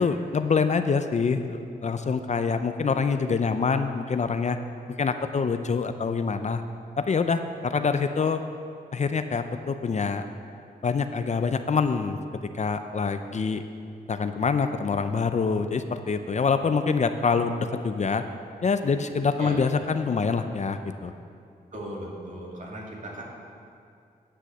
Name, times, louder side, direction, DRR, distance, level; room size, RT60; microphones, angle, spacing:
voice 1, 0.0-4.6 5.0-6.6 7.0-8.4 8.9-10.3 10.8-12.2 12.5-13.6 14.1-18.2 18.6-21.1, left 5 dB, 45° left, 9 dB, 0.5 m, -25 dB
voice 2, 21.7-23.2, right 1 dB, 50° right, -4 dB, 2.5 m, -37 dB
9.9 x 6.3 x 6.8 m, 2.4 s
cardioid pair, 75°, 16 cm